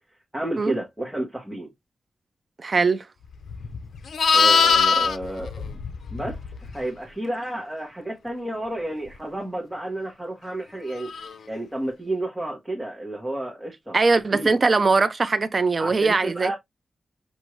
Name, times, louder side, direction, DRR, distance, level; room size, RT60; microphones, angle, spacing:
voice 1, 0.3-1.7 4.3-5.5 6.1-6.4 6.7-11.1 11.5-14.0 14.3-14.5 15.8-16.6, right 1 dB, 5° right, 1.2 m, -31 dB
voice 2, 2.6-3.0 13.9-16.5, right 4 dB, 40° right, 0.4 m, -21 dB
Livestock farm animals working animals, 3.4-6.7 11.1-11.3, left 5 dB, 85° left, 0.5 m, -22 dB
6.2 x 2.6 x 3.0 m
wide cardioid pair, 135°, 0 cm